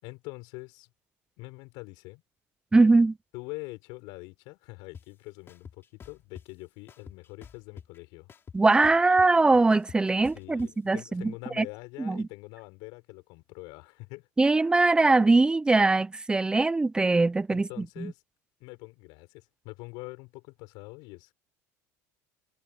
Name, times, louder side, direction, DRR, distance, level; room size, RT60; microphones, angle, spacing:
voice 1, 0.0-0.9 1.4-2.2 3.3-8.3 10.3-14.3 17.5-18.2 18.6-21.3, left 25 dB, 70° left, 6.8 m, -44 dB
voice 2, 2.7-3.1 8.5-11.6 12.0-12.3 14.4-17.7, right 3 dB, 10° right, 0.6 m, -22 dB
sound 1, 4.9-5.0 5.5-6.5 6.9-8.0 8.3-10.7, left 7 dB, 30° left, 3.1 m, -47 dB
supercardioid pair, 120°, 8 cm